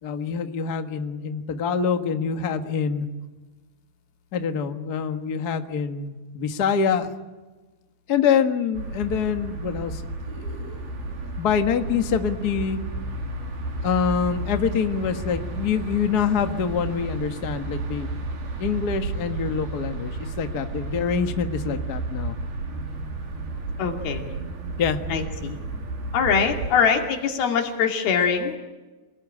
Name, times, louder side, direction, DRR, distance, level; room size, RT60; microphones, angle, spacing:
voice 1, 0.0-3.1 4.3-7.1 8.1-10.0 10.3-10.8 11.4-12.8 13.8-18.1 18.6-22.3 24.8-25.0, left 6 dB, 55° left, 7 dB, 1.1 m, -25 dB
sound 1, 8.7-26.8, right 2 dB, 85° right, 5.3 m, -32 dB
voice 2, 23.8-24.2 25.1-25.6 26.1-28.6, left 6 dB, 80° left, 4 dB, 4.3 m, -23 dB
27.5 x 20.0 x 9.9 m, 1.2 s
omnidirectional pair, 4.3 m